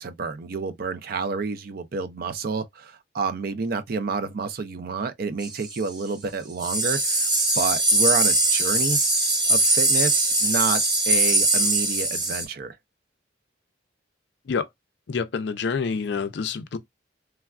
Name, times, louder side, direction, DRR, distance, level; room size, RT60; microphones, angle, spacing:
voice 1, 0.0-7.3 7.6-9.0 9.5-12.8, right 4 dB, 55° right, 0.4 m, -29 dB
sound 1, 5.4-5.8 6.6-12.5, right 2 dB, 25° right, 0.8 m, -21 dB
voice 2, 15.1-16.8, left 5 dB, 60° left, 0.4 m, -27 dB
3.3 x 2.3 x 2.3 m
head